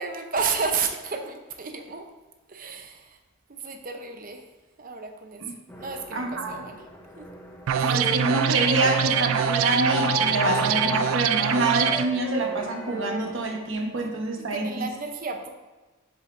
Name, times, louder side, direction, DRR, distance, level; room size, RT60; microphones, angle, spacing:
voice 1, 0.0-2.1 2.5-3.2 3.5-4.4 4.8-5.4 5.8-6.8 7.2-7.3 7.8-8.0 14.5-15.5, right 5 dB, 40° right, 5 dB, 0.8 m, -32 dB
sound 1, 5.7-13.7, equal, 10° left, 0.7 m, -43 dB
voice 2, 6.1-6.6 7.8-14.8, right 2 dB, 65° right, 1 dB, 1.2 m, -27 dB
sound 2, 7.7-12.1, right 9 dB, 85° right, 0.3 m, -24 dB
Wind instrument woodwind instrument, 7.9-13.2, equal, 5° right, 2.2 m, -31 dB
7.6 x 6.8 x 2.6 m, 1.2 s
head